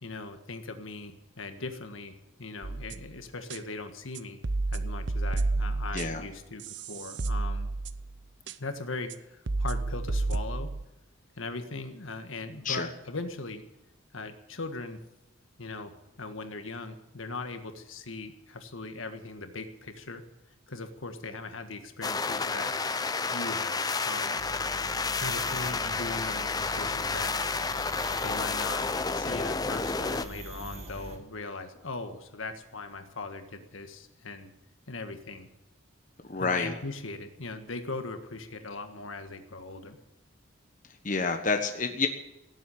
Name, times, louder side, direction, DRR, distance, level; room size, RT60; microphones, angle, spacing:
voice 1, 0.0-4.4 4.7-7.7 8.6-10.7 11.4-13.6 14.1-15.0 15.6-20.2 20.7-22.7 23.3-24.4 25.1-27.3 28.2-28.9 29.1-34.5 34.9-35.5 36.4-40.0, left 3 dB, 75° left, 7 dB, 1.6 m, -39 dB
sound 1, 2.6-3.1 3.5-3.6 4.1-6.3 6.6-8.1 8.5-8.6 9.1-9.2 9.5-10.8, right 2 dB, 55° right, 0.7 m, -31 dB
sound 2, 22.0-30.3, left 4 dB, 20° left, 0.5 m, -30 dB
Ubud Insects, 24.4-31.2, right 1 dB, 30° right, 1.8 m, -43 dB
voice 2, 36.3-36.7 41.0-42.1, left 4 dB, 40° left, 5 dB, 1.2 m, -28 dB
18.0 x 7.9 x 9.9 m, 0.95 s
head